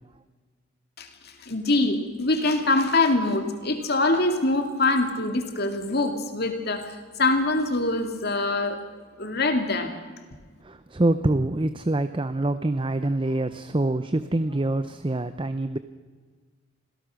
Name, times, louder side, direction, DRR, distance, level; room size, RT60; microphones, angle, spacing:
voice 1, 1.0-8.8 9.2-9.9, left 2 dB, 50° left, 6 dB, 2.4 m, -24 dB
voice 2, 10.6-15.8, right 2 dB, 25° right, 11 dB, 0.6 m, -25 dB
26.5 x 17.0 x 6.4 m, 1.5 s
head